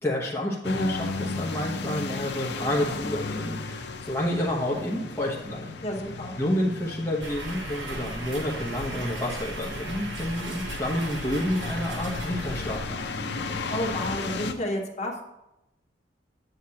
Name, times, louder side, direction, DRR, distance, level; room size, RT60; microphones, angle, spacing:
voice 1, 0.0-5.7 6.4-13.2, left 1 dB, 15° left, -5 dB, 1.0 m, -29 dB
sound 1, 0.6-14.5, left 3 dB, 70° left, 0.8 m, -35 dB
voice 2, 5.8-6.4 13.7-15.2, left 1 dB, 40° left, 0 dB, 1.6 m, -31 dB
sound 2, 7.2-13.2, right 1 dB, 85° right, 2.4 m, -37 dB
9.9 x 8.0 x 2.9 m, 0.89 s
head